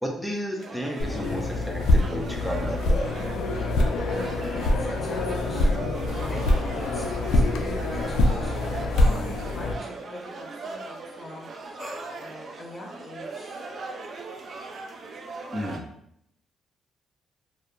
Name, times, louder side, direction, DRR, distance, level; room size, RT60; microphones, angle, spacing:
voice 1, 0.0-3.1 15.5-15.9, equal, 5° left, 1 dB, 0.5 m, -32 dB
sound 1, 0.6-15.8, right 3 dB, 50° right, 0.3 m, -39 dB
sound 2, 1.0-9.7, left 1 dB, 80° left, 0.3 m, -25 dB
voice 2, 4.1-11.8 12.1-13.6, left 1 dB, 25° left, -2 dB, 0.8 m, -44 dB
sound 3, 6.6-6.7 9.0-9.4 11.8-12.3, left 1 dB, 30° right, 1.1 m, -38 dB
2.8 x 2.1 x 2.4 m, 0.74 s
cardioid pair, 90°, 0 cm